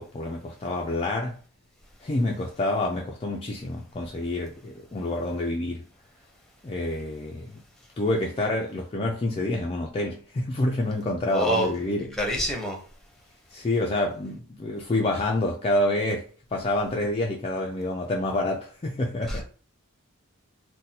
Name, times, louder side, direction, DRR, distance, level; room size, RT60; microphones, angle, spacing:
voice 1, 0.0-1.4 2.0-5.9 6.6-7.6 8.0-12.2 13.5-19.4, left 1 dB, 25° left, 0.4 m, -28 dB
voice 2, 11.3-11.7 12.2-12.8 19.3-19.4, right 1 dB, ahead, 0.8 m, -26 dB
2.8 x 2.1 x 3.9 m
head